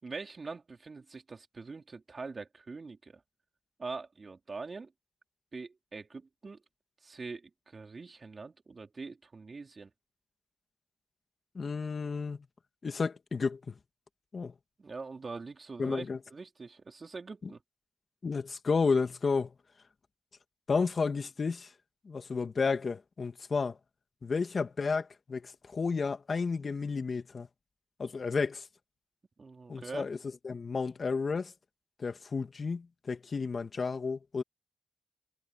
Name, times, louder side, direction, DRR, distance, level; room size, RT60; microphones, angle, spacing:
voice 1, 0.0-3.2 3.8-4.9 5.5-6.6 7.0-9.9 14.8-17.6 29.4-30.1, right 4 dB, 50° right, 4.0 m, -43 dB
voice 2, 11.5-12.4 12.8-13.7 14.3-14.5 15.8-16.2 18.2-19.5 20.7-21.7 22.1-23.8 24.2-27.5 28.0-28.6 29.7-30.2 30.4-31.5 32.0-34.4, left 4 dB, 55° left, 2.4 m, -32 dB
cardioid pair, 50°, 0 cm